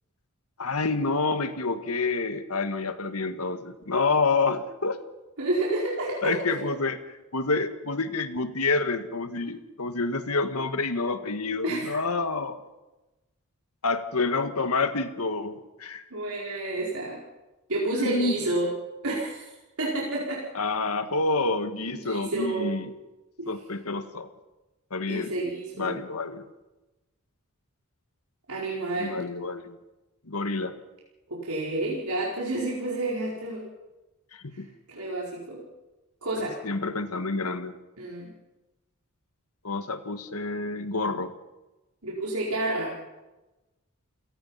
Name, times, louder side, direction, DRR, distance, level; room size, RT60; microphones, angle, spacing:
voice 1, 0.6-5.0 6.2-12.6 13.8-16.0 17.9-18.3 20.5-22.9 23.5-24.3 24.9-25.3 25.8-26.5 29.0-29.8 30.3-30.8 34.3-34.7 36.4-37.7 39.6-41.3, left 3 dB, 85° left, 9 dB, 1.8 m, -28 dB
voice 2, 5.4-6.4 11.6-12.0 16.1-17.2 17.7-18.7 19.0-19.5 19.8-20.4 21.9-22.7 23.4-23.5 25.1-25.9 28.5-29.2 31.3-33.7 34.5-34.6 34.9-35.6 36.2-36.6 38.0-38.3 42.0-42.9, right 2 dB, 80° right, -4 dB, 4.7 m, -30 dB
29.5 x 17.5 x 5.7 m, 1.1 s
head